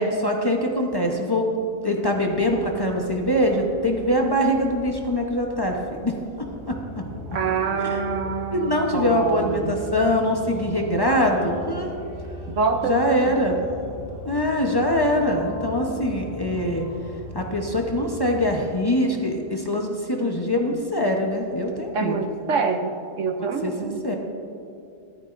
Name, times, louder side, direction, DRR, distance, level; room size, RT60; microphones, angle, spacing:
voice 1, 0.0-1.4 1.8-7.0 7.8-8.0 8.5-11.9 12.8-13.6 14.2-16.8 17.3-22.3 23.4-24.1, left 1 dB, 25° left, 1 dB, 0.5 m, -23 dB
sound 1, 2.2-18.6, left 1 dB, 5° right, 2.2 m, -39 dB
voice 2, 7.3-9.8 12.5-13.3 21.9-24.0, right 5 dB, 65° right, 5 dB, 0.8 m, -26 dB
15.0 x 12.5 x 2.6 m, 2.6 s
omnidirectional pair, 1.8 m